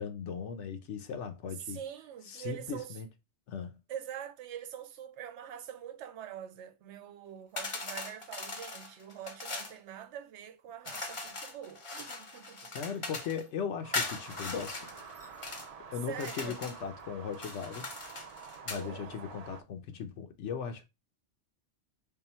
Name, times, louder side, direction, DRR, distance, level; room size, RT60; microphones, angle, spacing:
voice 1, 0.0-1.8 2.3-3.1 3.5-3.8 10.9-11.1 12.6-14.9 15.9-17.9 18.7-20.8, left 7 dB, 75° left, 1.0 m, -38 dB
voice 2, 1.6-3.0 3.9-12.7 16.1-16.6 18.7-19.1, right 10 dB, 75° right, 0.9 m, -44 dB
sound 1, 7.6-9.8 10.8-13.4 13.9-15.7 16.1-16.8 17.3-18.9, left 3 dB, 35° left, 0.6 m, -40 dB
sound 2, 13.8-19.6, right 6 dB, 55° right, 0.4 m, -48 dB
3.7 x 2.3 x 4.1 m
omnidirectional pair, 1.2 m